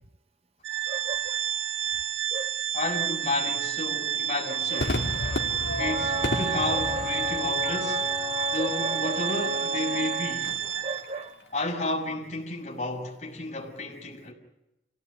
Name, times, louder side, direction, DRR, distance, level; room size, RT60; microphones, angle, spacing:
Organ, 0.6-11.3, right 10 dB, 85° right, 1.8 m, -30 dB
voice 1, 0.9-1.4 2.3-2.5 4.7-4.8 6.9-7.0 8.6-9.2 10.8-11.3, right 2 dB, 35° right, 0.9 m, -36 dB
voice 2, 2.7-5.1 5.8-8.1 8.5-10.6 11.5-14.3, left 2 dB, 40° left, 6.1 m, -32 dB
Crowd / Fireworks, 4.8-11.3, left 1 dB, 65° left, 2.9 m, -34 dB
Wind instrument woodwind instrument, 5.8-10.4, equal, 50° right, 5.7 m, -32 dB
29.0 x 17.5 x 9.6 m
head